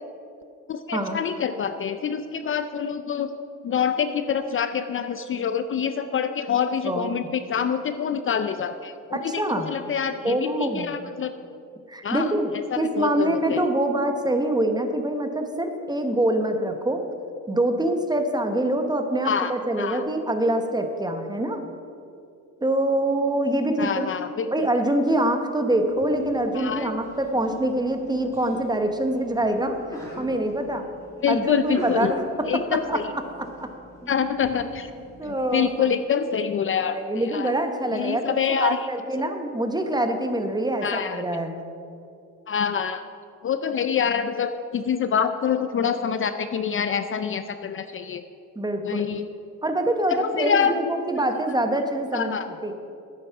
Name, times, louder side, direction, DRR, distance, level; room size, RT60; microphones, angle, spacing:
voice 1, 0.7-3.3 3.6-9.4 9.7-11.3 12.0-12.3 12.7-13.7 19.2-19.5 19.8-20.0 23.8-24.5 26.5-26.9 31.2-32.1 32.4-33.0 34.1-34.9 35.3-37.0 37.2-37.5 37.9-38.8 40.8-41.2 42.5-43.0 43.4-48.2 48.8-49.3 50.1-50.8 52.1-52.5, left 7 dB, 45° left, 10 dB, 0.5 m, -26 dB
voice 2, 6.8-7.3 9.1-9.7 10.2-10.9 11.9-12.5 12.8-17.0 17.5-21.6 22.6-24.1 24.5-29.8 30.2-30.9 31.3-33.0 33.4-33.7 35.2-35.9 36.9-41.5 48.6-49.1 49.6-52.3 52.6-52.7, right 1 dB, 15° right, 6 dB, 1.0 m, -25 dB
Sneeze, 25.8-35.8, equal, 10° left, 2.6 m, -41 dB
9.1 x 8.8 x 5.8 m, 2.6 s
cardioid pair, 90°, 30 cm